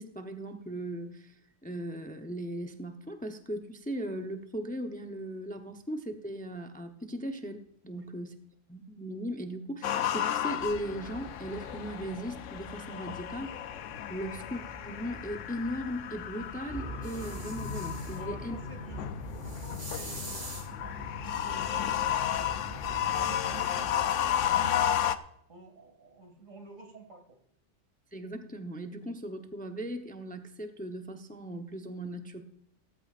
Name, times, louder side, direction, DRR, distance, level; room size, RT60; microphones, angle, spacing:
voice 1, 0.0-1.3 1.6-8.4 8.7-13.5 14.1-18.6 28.1-32.4, equal, 10° left, 5 dB, 0.6 m, -38 dB
sound 1, 9.8-25.2, left 10 dB, 75° left, 0.9 m, -33 dB
sound 2, 10.6-24.6, left 1 dB, 10° right, 5.9 m, -44 dB
sound 3, 17.0-18.2 19.3-20.7 22.8-22.9, right 1 dB, 30° right, 2.8 m, -44 dB
voice 2, 18.1-19.1 19.4-20.5 20.8-25.2 25.5-27.4, right 4 dB, 80° right, 4 dB, 2.6 m, -50 dB
16.0 x 14.0 x 2.5 m, 0.73 s
omnidirectional pair, 1.3 m